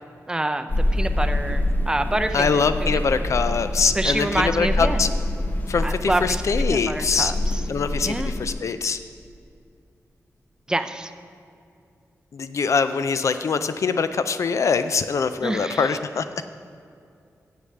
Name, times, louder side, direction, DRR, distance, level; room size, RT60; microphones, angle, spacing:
voice 1, 0.3-3.0 3.9-5.0 5.8-6.4 6.7-7.6 8.1-8.3 10.7-11.1 15.4-15.9, right 1 dB, 15° right, 9 dB, 0.5 m, -27 dB
sound 1, 0.7-8.5, left 1 dB, 30° left, 0.8 m, -26 dB
voice 2, 2.3-5.1 5.7-7.3 7.7-9.0 12.3-16.2, left 5 dB, 60° left, 10 dB, 0.3 m, -23 dB
7.8 x 6.6 x 7.5 m, 2.4 s
wide cardioid pair, 130°, 6 cm